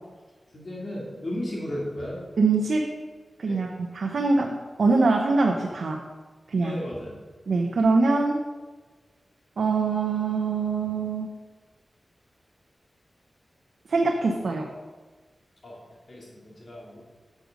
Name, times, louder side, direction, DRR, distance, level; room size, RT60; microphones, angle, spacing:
voice 1, 0.5-2.2 3.5-3.6 6.6-7.2 15.6-17.0, left 1 dB, 45° left, -4 dB, 2.5 m, -35 dB
voice 2, 2.4-2.9 3.4-6.0 6.5-6.8 7.5-8.4 9.6-11.4 13.9-14.7, right 3 dB, 80° right, 1 dB, 0.8 m, -23 dB
9.8 x 6.6 x 5.2 m, 1.4 s
wide cardioid pair, 140°, 0 cm